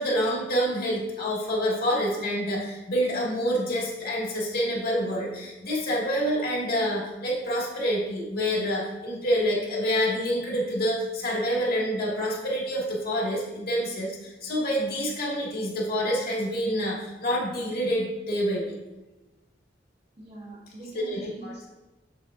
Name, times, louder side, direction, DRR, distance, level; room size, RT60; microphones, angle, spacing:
voice 1, 0.0-18.8 20.9-21.7, equal, 55° left, -4 dB, 2.0 m, -27 dB
voice 2, 20.2-21.7, right 2 dB, 35° right, -5 dB, 1.8 m, -43 dB
6.8 x 6.8 x 2.6 m, 1.1 s
head